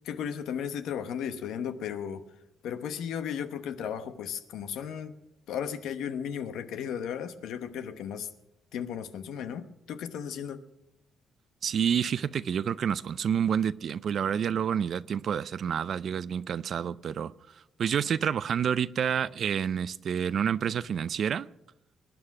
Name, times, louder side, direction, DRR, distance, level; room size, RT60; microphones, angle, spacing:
voice 1, 0.0-2.2 2.6-5.2 5.5-8.3 8.7-10.6, left 8 dB, 85° left, 1.0 m, -35 dB
voice 2, 11.6-17.3 17.8-21.5, right 8 dB, 60° right, 0.5 m, -28 dB
21.0 x 9.6 x 5.9 m
cardioid pair, 90°, 0 cm